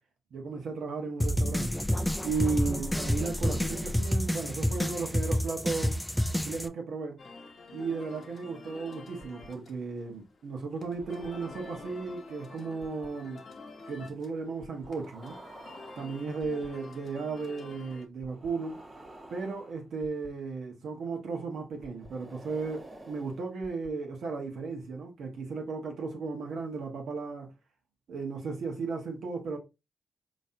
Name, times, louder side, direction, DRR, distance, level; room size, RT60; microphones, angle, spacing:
voice 1, 0.3-1.8 2.2-6.0 6.4-7.2 7.7-13.4 13.9-15.4 16.0-18.8 19.3-27.5 28.1-29.6, right 4 dB, 75° right, 1.1 m, -35 dB
sound 1, 1.2-6.7, equal, 5° left, 0.4 m, -29 dB
sound 2, 7.2-18.1, left 4 dB, 60° left, 0.9 m, -49 dB
sound 3, 9.2-9.5 10.8-12.3 12.8-13.1 14.6-16.7 18.2-20.3 21.8-23.9, right 2 dB, 35° right, 1.3 m, -50 dB
4.1 x 3.1 x 2.6 m
supercardioid pair, 55°, 0 cm